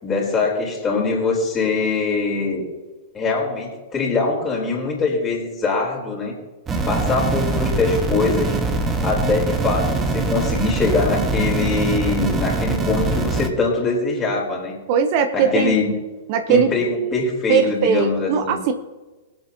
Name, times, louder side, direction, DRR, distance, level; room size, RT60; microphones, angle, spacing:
voice 1, 0.0-2.6 3.1-6.3 6.9-8.6 9.0-14.7 15.3-15.9 16.5-18.6, left 4 dB, 20° left, -1 dB, 4.1 m, -22 dB
sound 1, 6.7-13.5, right 3 dB, 20° right, 1.5 m, -23 dB
voice 2, 14.9-15.7 16.3-16.7 17.5-18.7, right 7 dB, 45° right, 8 dB, 0.9 m, -19 dB
22.0 x 8.3 x 3.0 m, 1.2 s
figure-of-eight pair, 100°, 0 cm